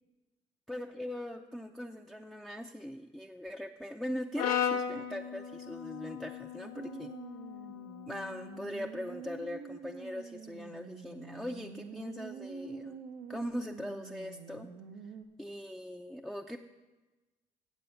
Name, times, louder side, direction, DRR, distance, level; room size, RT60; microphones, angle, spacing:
voice 1, 0.7-7.1 8.1-13.0 13.3-14.7 15.4-16.6, left 1 dB, 5° left, 2 dB, 0.5 m, -40 dB
Brass instrument, 4.4-8.6, left 8 dB, 85° left, 0.7 m, -36 dB
sound 1, 6.7-15.2, right 6 dB, 80° right, 0.6 m, -47 dB
8.1 x 7.6 x 5.7 m, 1.2 s
supercardioid pair, 55°, 14 cm